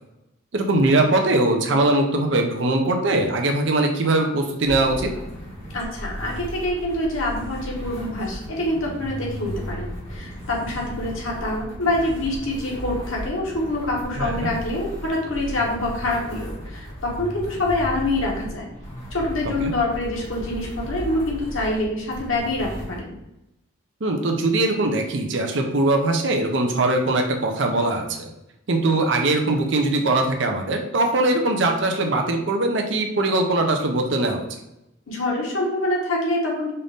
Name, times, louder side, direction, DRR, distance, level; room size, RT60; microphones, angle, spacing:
voice 1, 0.5-5.1 14.2-14.5 19.4-19.7 24.0-28.3 28.7-34.4, right 2 dB, 65° right, 4 dB, 0.6 m, -21 dB
sound 1, 4.6-23.0, equal, 30° left, 1.4 m, -35 dB
voice 2, 5.7-18.7 19.1-23.1 35.1-36.7, left 1 dB, 90° left, -2 dB, 1.4 m, -26 dB
5.5 x 2.6 x 3.5 m, 0.90 s
head